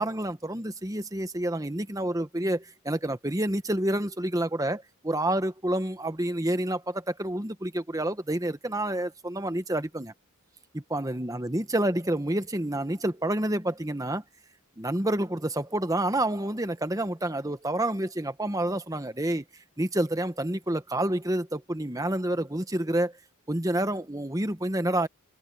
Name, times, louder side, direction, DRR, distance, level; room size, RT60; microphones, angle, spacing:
voice 1, 0.0-10.1 10.7-14.2 14.8-19.4 19.8-23.1 23.5-25.1, right 1 dB, 15° right, 1.2 m, -28 dB
head